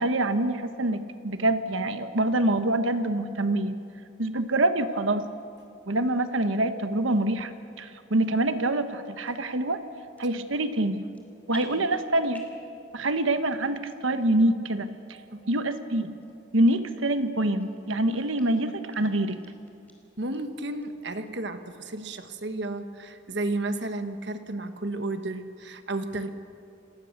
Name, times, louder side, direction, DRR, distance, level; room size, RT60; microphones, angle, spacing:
voice 1, 0.0-3.8 4.2-5.2 5.9-7.5 7.8-9.8 10.2-11.0 11.5-12.4 12.9-14.9 15.5-16.2 16.5-19.4, right 1 dB, 85° right, 10 dB, 1.3 m, -25 dB
sound 1, 9.2-9.4 10.0-10.5 10.7-11.2 11.5-12.7 13.0-13.5 13.9-14.0 14.6-14.7 15.4-15.5 16.2-16.3 16.7-16.8 17.3-17.9 18.3-18.4 18.9-19.0 19.3-19.9 20.3-20.4 20.8-20.9 21.3-21.8 22.1-22.2, left 2 dB, 10° left, 2.8 m, -49 dB
voice 2, 15.1-15.5 18.3-18.5 20.2-26.3, right 2 dB, 60° right, 9 dB, 1.3 m, -33 dB
28.5 x 18.5 x 6.7 m, 2.5 s
head